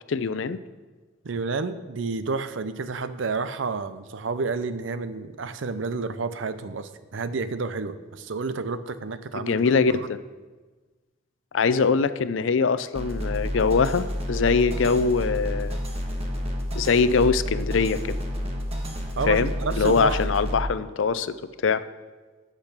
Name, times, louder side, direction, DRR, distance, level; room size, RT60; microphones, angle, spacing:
voice 1, 0.1-0.6 9.3-10.2 11.5-15.8 16.8-18.2 19.3-21.4 21.6-21.8, left 5 dB, 85° left, 14 dB, 0.5 m, -23 dB
voice 2, 1.2-9.6 9.9-10.1 19.2-20.2, right 4 dB, 80° right, 13 dB, 0.6 m, -30 dB
sound 1, 13.0-20.6, equal, 35° right, 1.3 m, -30 dB
8.7 x 8.3 x 6.0 m, 1.3 s
head